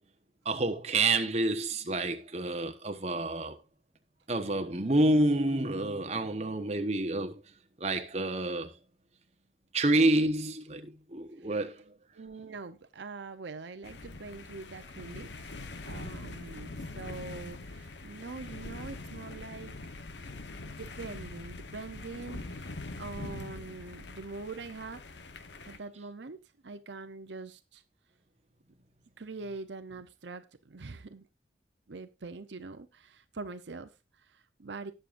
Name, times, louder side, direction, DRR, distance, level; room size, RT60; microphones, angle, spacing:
voice 1, 0.4-3.6 4.3-7.4 7.8-8.7 9.7-11.8, right 2 dB, 35° right, 1.1 m, -28 dB
voice 2, 12.1-15.5 15.8-19.7 20.6-25.0 25.6-27.8 29.2-31.3 31.9-34.9, right 3 dB, 75° right, 0.7 m, -44 dB
sound 1, 13.8-25.8, left 2 dB, 75° left, 1.1 m, -43 dB
19.0 x 6.7 x 2.6 m
head